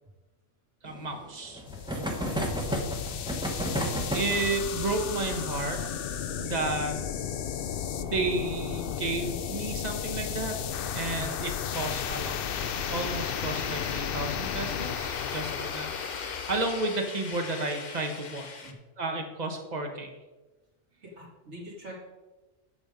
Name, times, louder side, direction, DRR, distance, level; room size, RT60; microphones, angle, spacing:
sound 1, 0.8-10.1 10.3-10.4 10.7-10.8 11.0-11.1 12.5-12.8 13.5-13.9, right 1 dB, 5° right, 1.1 m, -35 dB
voice 1, 0.8-1.6 4.1-5.8 6.3-7.0 8.0-10.6 10.9-12.4 12.8-18.5 19.0-20.1, right 2 dB, 35° right, 4 dB, 1.3 m, -32 dB
sound 2, 1.7-17.0, left 8 dB, 60° left, 0.7 m, -34 dB
sound 3, 12.5-18.7, left 4 dB, 40° left, 1.0 m, -41 dB
voice 2, 21.0-21.9, equal, 65° right, -4 dB, 2.6 m, -44 dB
8.9 x 7.1 x 5.1 m, 1.2 s
omnidirectional pair, 1.3 m